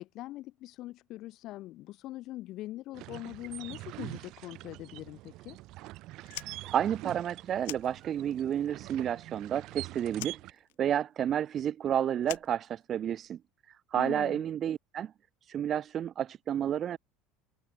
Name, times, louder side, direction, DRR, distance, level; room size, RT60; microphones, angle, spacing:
voice 1, 0.0-5.6 14.0-14.4, left 16 dB, 55° left, 1.3 m, -42 dB
sound 1, 2.9-10.5, right 18 dB, 60° right, 1.8 m, -45 dB
Fire, 6.2-8.5 8.8-9.8 10.1-13.3, left 21 dB, 85° left, 1.5 m, -46 dB
voice 2, 6.3-13.4 13.7-15.1 15.4-17.0, right 10 dB, 40° right, 0.4 m, -31 dB
supercardioid pair, 125°, 0 cm